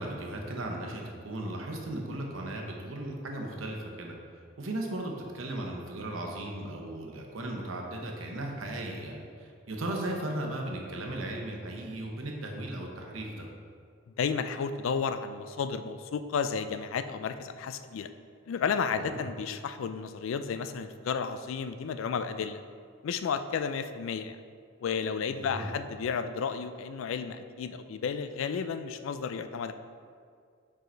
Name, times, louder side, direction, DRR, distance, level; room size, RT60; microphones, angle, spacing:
voice 1, 0.0-4.2 4.6-13.5 19.0-19.2 25.3-25.7, right 1 dB, 85° right, 1 dB, 0.9 m, -36 dB
voice 2, 14.2-18.1 18.5-22.6 23.0-24.4 24.8-29.7, left 6 dB, 80° left, 10 dB, 0.3 m, -32 dB
4.9 x 4.8 x 4.5 m, 2.2 s
head